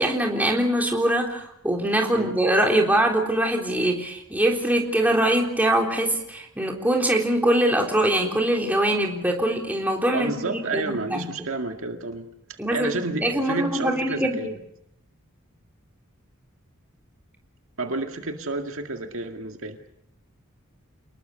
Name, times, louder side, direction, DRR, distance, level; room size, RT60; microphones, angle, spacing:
voice 1, 0.0-11.3 12.6-14.4, right 1 dB, 10° right, 0 dB, 3.7 m, -23 dB
voice 2, 10.1-12.3 12.7-14.5 17.8-19.8, right 3 dB, 65° right, 5 dB, 2.0 m, -30 dB
29.0 x 20.5 x 6.9 m, 0.79 s
head